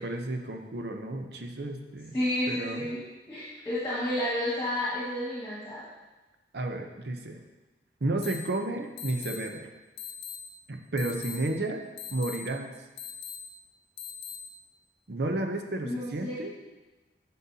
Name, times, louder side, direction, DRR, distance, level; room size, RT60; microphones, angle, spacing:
voice 1, 0.0-2.2 2.5-2.9 6.5-7.4 8.0-9.7 10.7-11.8 12.1-12.7 15.1-16.5, right 2 dB, 65° right, 4 dB, 0.7 m, -32 dB
voice 2, 2.1-3.0 3.3-5.8 15.8-16.4, left 1 dB, 15° left, -9 dB, 1.7 m, -31 dB
sound 1, 8.2-8.4 9.0-9.4 10.0-10.4 11.0-11.4 12.0-12.4 13.0-13.4 14.0-14.4, left 9 dB, 60° left, 0.9 m, -39 dB
9.7 x 5.5 x 2.8 m, 1.1 s
head